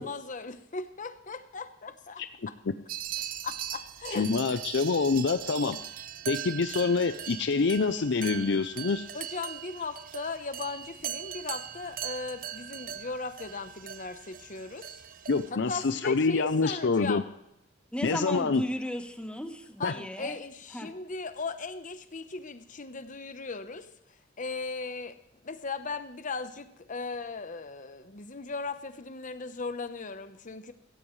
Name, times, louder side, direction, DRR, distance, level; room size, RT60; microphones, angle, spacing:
voice 1, 0.0-2.2 3.4-4.3 9.1-15.0 15.5-17.3 19.8-25.2 25.4-30.7, left 4 dB, 45° left, 10 dB, 1.0 m, -38 dB
sound 1, 2.9-15.5, right 10 dB, 45° right, 0.6 m, -40 dB
voice 2, 4.1-5.8 6.3-9.1 15.3-17.2 18.0-18.6 19.8-19.9, left 4 dB, 65° left, 10 dB, 0.6 m, -26 dB
voice 3, 17.9-20.4 20.7-20.9, equal, 5° left, 6 dB, 1.2 m, -35 dB
16.0 x 15.0 x 3.2 m, 0.82 s
head